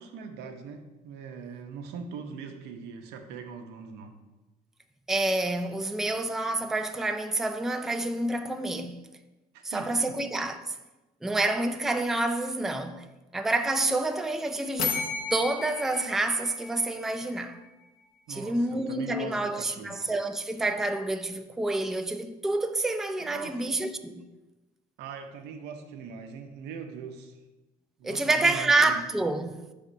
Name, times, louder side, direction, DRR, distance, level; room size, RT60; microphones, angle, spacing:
voice 1, 0.0-4.2 9.5-10.2 18.3-19.9 23.2-23.8 25.0-27.4 28.0-29.0, right 5 dB, 85° right, 0.7 m, -41 dB
voice 2, 5.1-9.1 9.6-10.8 11.2-13.1 13.3-15.0 15.3-17.6 18.3-24.2 28.0-29.6, right 2 dB, ahead, 0.3 m, -28 dB
sound 1, 14.8-17.5, left 4 dB, 60° left, 0.8 m, -34 dB
5.0 x 3.6 x 5.4 m
cardioid pair, 110°, 17 cm